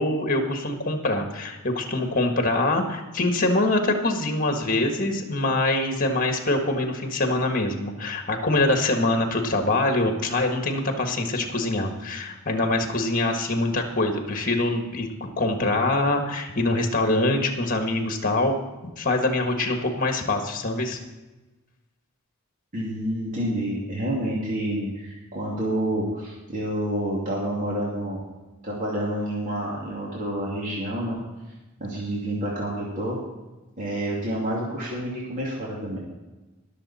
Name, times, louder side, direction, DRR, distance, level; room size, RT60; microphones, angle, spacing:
voice 1, 0.0-18.6 19.0-21.0, left 2 dB, 40° left, 4 dB, 1.6 m, -24 dB
voice 2, 22.7-28.2 28.6-31.2 31.8-33.2 33.8-36.0, right 1 dB, 40° right, -5 dB, 2.6 m, -28 dB
19.5 x 7.1 x 4.3 m, 1.1 s
head